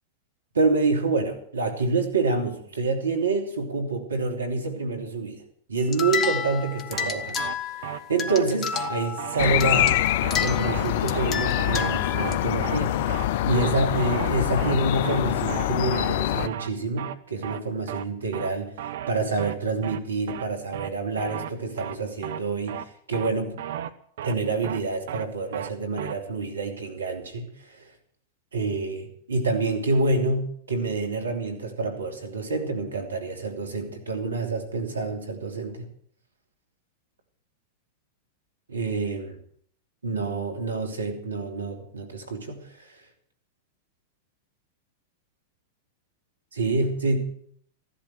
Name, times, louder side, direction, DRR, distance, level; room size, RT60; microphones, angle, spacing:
voice 1, 0.5-5.4 5.7-7.5 7.8-9.9 10.4-13.0 13.4-18.7 19.1-22.8 23.1-23.6 24.2-27.8 28.5-35.8 38.7-39.4 40.0-42.6 46.6-47.2, right 3 dB, 85° right, 5 dB, 3.2 m, -27 dB
sound 1, 5.8-12.4, left 7 dB, 30° left, 1.5 m, -31 dB
sound 2, 6.9-7.1 7.4-7.5 7.8-8.0 8.3-8.4 8.7-8.9 9.2-9.5 9.8-9.9 10.2-10.4 10.7-10.8 11.1-11.3 11.6-11.9 12.2-12.3 12.6-12.8 13.1-13.3 13.5-13.7 14.0-14.3 14.6-14.8 15.0-15.2 15.5-15.7 15.9-16.1 16.4-16.7 17.0-17.2 17.4-17.6 17.9-18.0 18.3-18.5 18.8-19.1 19.4-19.5 19.8-20.0 20.3-20.4 20.7-20.9 21.2-21.5 21.8-22.0 22.2-22.4 22.7-22.8 23.1-23.3 23.6-23.9 24.2-24.3 24.6-24.8 25.1-25.3 25.5-25.7 26.0-26.1, right 11 dB, 65° right, 1.1 m, -34 dB
sound 3, 9.4-16.5, left 13 dB, 55° left, 0.6 m, -25 dB
15.5 x 11.0 x 7.8 m, 0.62 s
hypercardioid pair, 100°, 0 cm